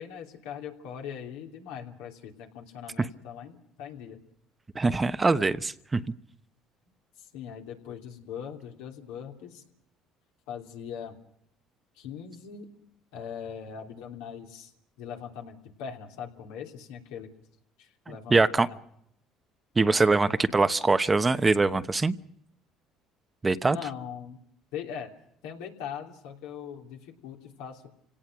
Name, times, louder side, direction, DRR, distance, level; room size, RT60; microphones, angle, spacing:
voice 1, 0.0-4.2 7.2-9.6 10.5-11.2 11.9-12.7 13.1-14.7 15.0-17.3 17.8-18.8 23.6-24.4 24.7-25.1 25.4-27.9, left 8 dB, 80° left, 2 dB, 3.1 m, -40 dB
voice 2, 4.7-6.0 18.3-18.7 19.8-22.1 23.4-23.8, right 3 dB, 20° right, 12 dB, 1.0 m, -23 dB
29.0 x 17.5 x 6.1 m, 0.72 s
supercardioid pair, 75°, 0 cm